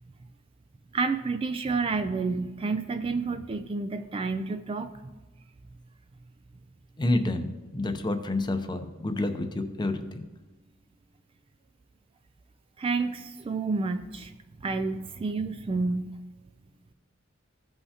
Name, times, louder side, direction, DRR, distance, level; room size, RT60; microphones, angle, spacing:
voice 1, 0.9-4.9 12.8-14.3 14.6-16.2, right 4 dB, 25° right, 9 dB, 0.3 m, -29 dB
voice 2, 7.0-10.2, left 2 dB, 20° left, 8 dB, 0.6 m, -29 dB
15.0 x 5.6 x 2.8 m, 1.2 s
head